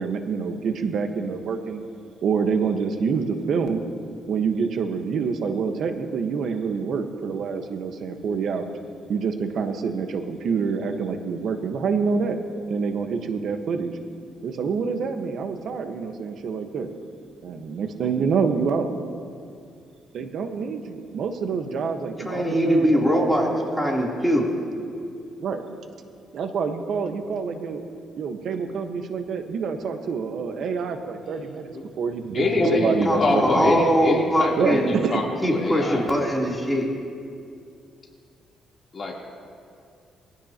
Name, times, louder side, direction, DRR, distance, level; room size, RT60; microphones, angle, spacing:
voice 1, 0.0-1.9 2.2-3.8 4.3-8.8 9.1-12.4 12.7-14.0 14.4-16.9 17.4-18.9 20.1-23.6 25.4-25.6 26.3-27.8 28.2-33.9 34.6-35.2, right 5 dB, 65° right, 6 dB, 1.3 m, -27 dB
voice 2, 22.2-23.5 23.8-24.5 32.6-32.8 33.0-34.9 35.4-36.9, equal, 5° left, -3 dB, 3.3 m, -22 dB
voice 3, 32.3-36.0 38.9-39.1, left 3 dB, 40° left, -3 dB, 3.4 m, -25 dB
22.0 x 16.0 x 3.0 m, 2.4 s
cardioid pair, 90°, 0 cm